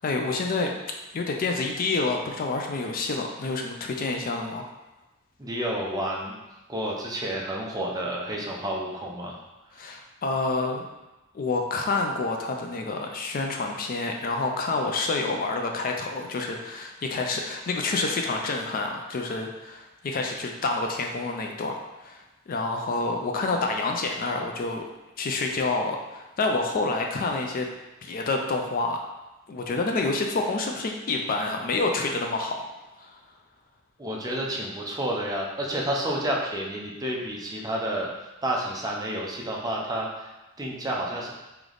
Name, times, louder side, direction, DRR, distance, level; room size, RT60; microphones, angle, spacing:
voice 1, 0.0-0.7 1.1-4.7 9.8-10.8 11.3-22.2 22.5-24.8 25.2-27.7 28.0-29.0 29.5-32.7 33.0-33.1, left 3 dB, 45° left, 2 dB, 0.4 m, -28 dB
voice 2, 5.4-6.4 6.7-9.4 34.0-38.1 38.4-40.3 40.6-41.3, right 1 dB, 20° right, -2 dB, 0.5 m, -30 dB
3.3 x 3.0 x 3.8 m, 1.0 s
head